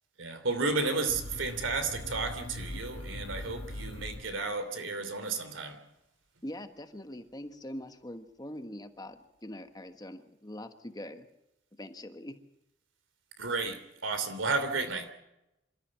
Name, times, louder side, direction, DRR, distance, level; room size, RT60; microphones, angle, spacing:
voice 1, 0.2-5.8 13.4-15.1, right 3 dB, 85° right, 3.0 m, -32 dB
sound 1, 1.1-4.8, left 1 dB, 90° left, 1.8 m, -41 dB
voice 2, 6.4-11.3 11.8-12.4, left 1 dB, 20° left, 1.3 m, -43 dB
27.0 x 13.5 x 7.6 m
head